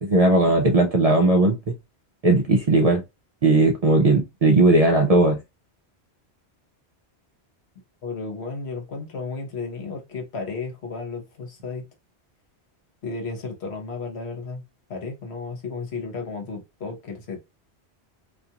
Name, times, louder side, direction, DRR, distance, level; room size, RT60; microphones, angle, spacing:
voice 1, 0.0-1.7 2.2-3.0 3.4-5.4, right 2 dB, 55° right, 0.4 m, -18 dB
voice 2, 8.0-11.8 13.0-14.6 14.9-17.4, left 4 dB, 70° left, 1.1 m, -33 dB
2.5 x 2.4 x 2.7 m
omnidirectional pair, 1.1 m